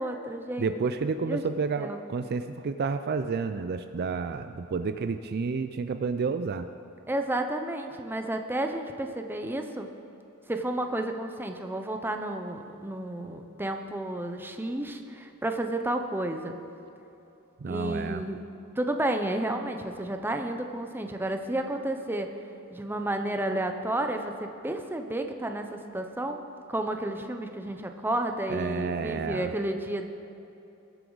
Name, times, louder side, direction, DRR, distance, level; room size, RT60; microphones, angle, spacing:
voice 1, 0.0-0.8 1.2-1.4 1.8-2.0 7.1-9.9 10.5-16.6 17.7-18.4 18.8-22.3 22.7-26.4 26.7-30.1, right 1 dB, 10° right, 5 dB, 0.7 m, -31 dB
voice 2, 0.6-6.7 17.6-18.2 28.5-29.5, right 4 dB, 45° right, 9 dB, 0.4 m, -30 dB
21.0 x 8.1 x 3.9 m, 2.9 s
head